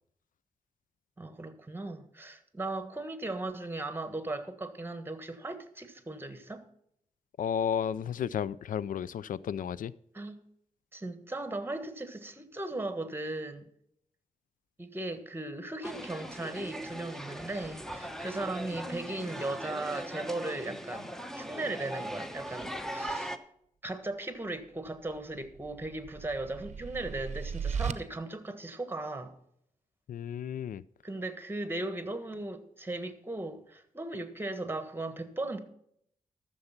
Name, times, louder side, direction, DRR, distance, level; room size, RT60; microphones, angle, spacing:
voice 1, 1.2-6.6 10.1-10.4 10.9-13.7 14.8-23.3 23.8-29.3 31.0-35.6, right 2 dB, 15° right, 1.4 m, -37 dB
voice 2, 7.4-9.9 30.1-30.8, left 8 dB, 80° left, 0.4 m, -33 dB
sound 1, 15.8-23.4, equal, 5° left, 0.9 m, -39 dB
sound 2, 25.1-27.9, right 6 dB, 55° right, 0.7 m, -37 dB
13.0 x 6.9 x 5.8 m
wide cardioid pair, 95°, 14 cm